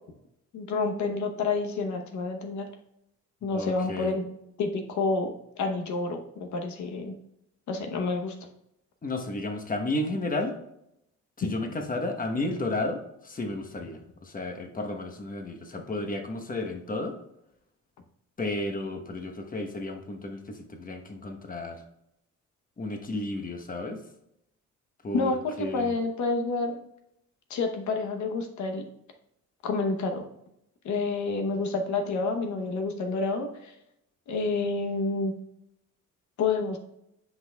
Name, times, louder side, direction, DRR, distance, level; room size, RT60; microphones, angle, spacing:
voice 1, 0.5-2.7 3.4-4.3 4.6-7.1 7.7-8.3 11.4-11.5 25.1-26.8 27.5-28.8 29.6-30.2 30.8-33.7 34.3-35.3 36.4-36.8, left 3 dB, 70° left, 5 dB, 1.0 m, -29 dB
voice 2, 3.5-4.1 9.0-10.6 11.4-17.2 18.4-21.8 22.8-24.0 25.0-25.9, left 2 dB, 30° left, 4 dB, 1.1 m, -33 dB
9.7 x 5.6 x 2.3 m, 0.81 s
cardioid pair, 90°, 30 cm